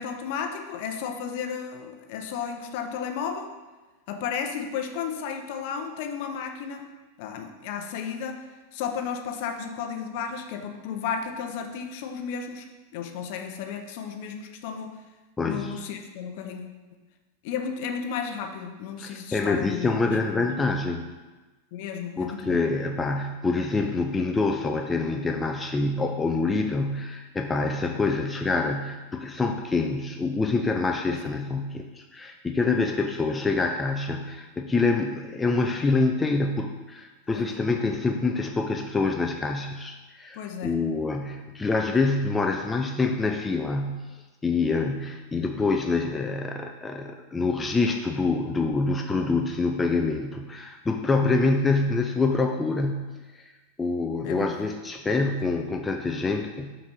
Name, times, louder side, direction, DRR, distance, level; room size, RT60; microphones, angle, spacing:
voice 1, 0.0-3.5 4.1-6.9 7.2-8.5 8.7-12.7 12.9-15.0 15.4-16.6 17.4-20.5 21.7-22.6 31.1-31.3 37.3-37.5 40.3-40.8 51.2-51.4 54.2-54.7, left 7 dB, 50° left, 5 dB, 0.7 m, -33 dB
voice 2, 15.4-15.8 19.0-21.1 22.2-44.1 44.4-53.4 53.8-56.7, left 3 dB, 15° left, 3 dB, 0.4 m, -26 dB
5.9 x 4.1 x 5.2 m, 1.2 s
figure-of-eight pair, 90°, 0 cm